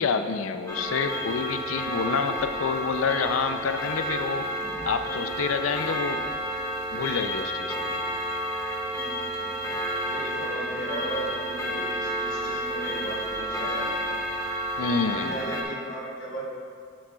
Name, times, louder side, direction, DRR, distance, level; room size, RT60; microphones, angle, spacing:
voice 1, 0.0-4.5 4.8-6.2 6.9-7.8 14.8-15.3, left 5 dB, 85° left, 8 dB, 0.4 m, -28 dB
Clock, 0.7-15.6, equal, 15° left, 0.8 m, -31 dB
voice 2, 9.0-9.5 10.1-14.1 15.0-16.4, right 1 dB, 65° left, -9 dB, 1.8 m, -36 dB
11.5 x 6.3 x 2.3 m, 2.3 s
head